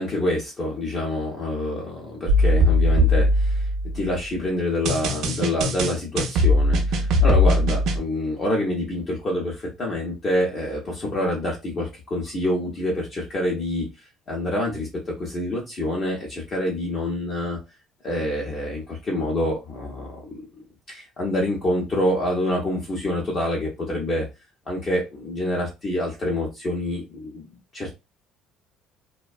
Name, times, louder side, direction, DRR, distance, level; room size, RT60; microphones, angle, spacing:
voice 1, 0.0-3.7 3.9-13.9 14.3-17.6 18.0-20.4 20.9-24.3 24.7-27.4 27.7-27.9, left 1 dB, 25° left, -2 dB, 0.5 m, -26 dB
sound 1, 2.3-4.1 4.9-8.0, left 1 dB, 55° right, 0.5 m, -20 dB
2.5 x 2.1 x 2.3 m, 0.25 s
cardioid pair, 175°, 0 cm